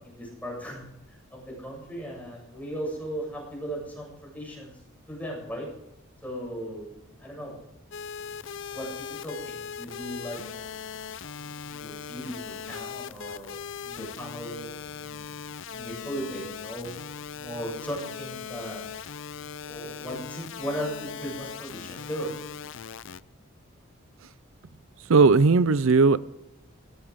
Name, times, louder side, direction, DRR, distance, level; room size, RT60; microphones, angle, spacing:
voice 1, 0.0-4.7 5.1-5.7 6.2-7.6 8.7-10.6 11.7-13.5 13.8-15.3 15.7-17.0 17.4-18.8 19.6-22.3, equal, 5° left, 7.5 m, -37 dB
sound 1, 7.9-23.2, left 7 dB, 60° left, 0.5 m, -39 dB
voice 2, 25.1-26.2, right 4 dB, 70° right, 0.5 m, -17 dB
18.0 x 17.5 x 3.6 m
head